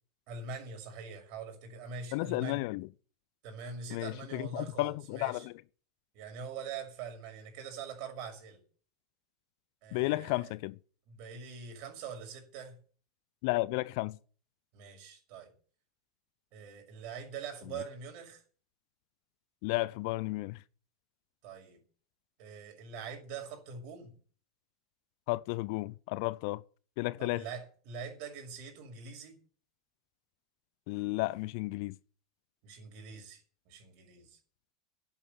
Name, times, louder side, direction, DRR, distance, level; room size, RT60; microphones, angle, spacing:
voice 1, 0.3-2.7 3.4-5.5 6.1-8.6 9.8-10.5 11.1-12.8 14.7-15.5 16.5-18.4 21.4-21.8 22.4-24.2 27.2-29.4 32.6-34.4, right 5 dB, 50° right, 6.3 m, -44 dB
voice 2, 2.1-2.9 3.9-5.5 9.9-10.8 13.4-14.2 19.6-20.6 25.3-26.6 27.0-27.4 30.9-31.9, left 21 dB, 55° left, 0.6 m, -33 dB
11.0 x 9.0 x 9.5 m
figure-of-eight pair, 85°, 2 cm